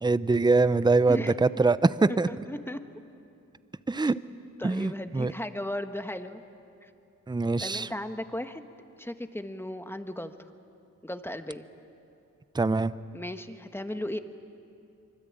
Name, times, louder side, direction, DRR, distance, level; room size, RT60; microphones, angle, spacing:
voice 1, 0.0-2.3 3.9-4.1 4.6-5.3 7.3-7.9 12.5-12.9, right 3 dB, 15° right, 15 dB, 0.6 m, -23 dB
voice 2, 1.1-1.4 2.1-2.8 4.6-6.4 6.8-6.9 7.6-8.6 9.0-10.3 11.0-11.6 13.1-14.2, left 1 dB, 5° left, 8 dB, 1.3 m, -36 dB
25.0 x 24.0 x 8.8 m, 2.6 s
cardioid pair, 75°, 33 cm